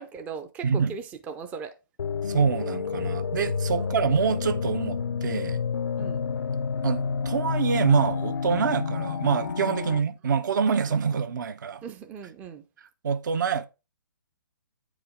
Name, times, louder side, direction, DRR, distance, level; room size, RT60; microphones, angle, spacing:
voice 1, 0.0-1.7 3.8-4.0 6.0-6.3 9.9-10.0 10.9-11.0 11.8-12.6, right 5 dB, 10° right, 0.5 m, -39 dB
voice 2, 0.6-1.0 2.3-5.6 6.8-11.8 13.0-13.7, right 6 dB, 55° right, 0.8 m, -25 dB
sound 1, 2.0-10.0, left 5 dB, 85° left, 0.6 m, -29 dB
8.8 x 5.0 x 3.6 m
hypercardioid pair, 150°, 12 cm